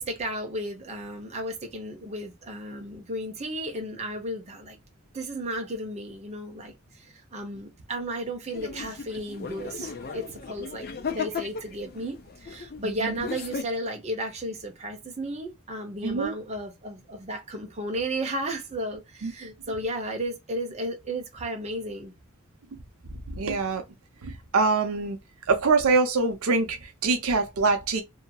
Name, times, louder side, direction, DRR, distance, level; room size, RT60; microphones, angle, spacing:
voice 1, 0.0-4.8 5.1-6.7 7.0-10.9 11.1-22.1, right 1 dB, 30° right, 0.7 m, -34 dB
sound 1, 8.5-13.6, left 5 dB, 45° left, 0.6 m, -36 dB
voice 2, 16.0-16.3 19.2-19.3 23.3-23.8 24.2-25.2 25.5-28.0, right 4 dB, 70° right, 0.5 m, -24 dB
2.7 x 2.7 x 2.2 m
head